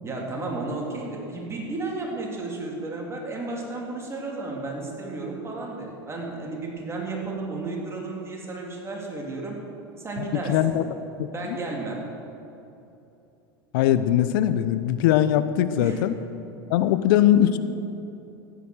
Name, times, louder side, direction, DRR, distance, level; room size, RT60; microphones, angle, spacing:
voice 1, 0.0-9.5 10.0-10.8 11.3-12.0 15.8-16.0, right 3 dB, 20° right, -2 dB, 3.4 m, -33 dB
voice 2, 10.5-10.8 11.2-11.6 13.7-16.1 16.7-17.6, left 12 dB, 60° left, 12 dB, 0.8 m, -21 dB
14.0 x 9.9 x 6.4 m, 2.8 s
hypercardioid pair, 85°, 13 cm